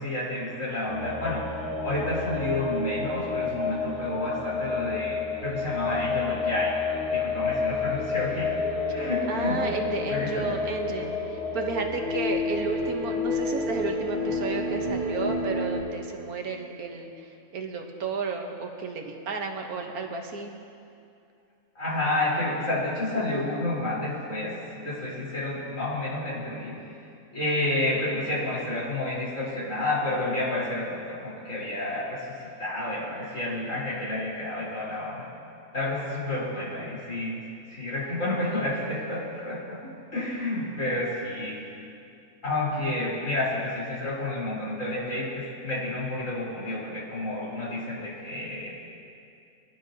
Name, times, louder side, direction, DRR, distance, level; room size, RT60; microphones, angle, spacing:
voice 1, 0.0-8.5 8.9-9.6 10.1-10.6 21.8-26.8 27.3-32.3 32.6-35.3 35.7-37.4 37.7-41.6 42.4-48.7, left 2 dB, 55° left, -8 dB, 4.2 m, -30 dB
sound 1, 0.9-15.8, left 3 dB, 40° right, 2.0 m, -30 dB
voice 2, 9.3-20.5, right 4 dB, 70° right, 3 dB, 1.5 m, -33 dB
22.5 x 12.0 x 2.8 m, 2.5 s
omnidirectional pair, 1.6 m